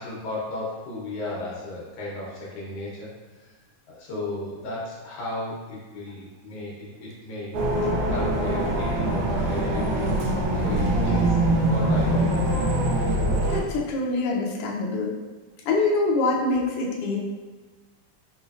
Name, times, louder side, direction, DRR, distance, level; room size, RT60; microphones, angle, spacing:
voice 1, 0.0-3.1 3.9-7.5 8.1-10.3 10.6-12.7, left 2 dB, 65° left, -6 dB, 1.7 m, -35 dB
sound 1, 7.5-13.6, right 1 dB, 85° right, 2.1 m, -23 dB
voice 2, 10.9-11.2 13.5-15.1 15.6-17.2, left 3 dB, 85° left, -2 dB, 1.3 m, -25 dB
4.7 x 3.1 x 2.4 m, 1.3 s
omnidirectional pair, 3.3 m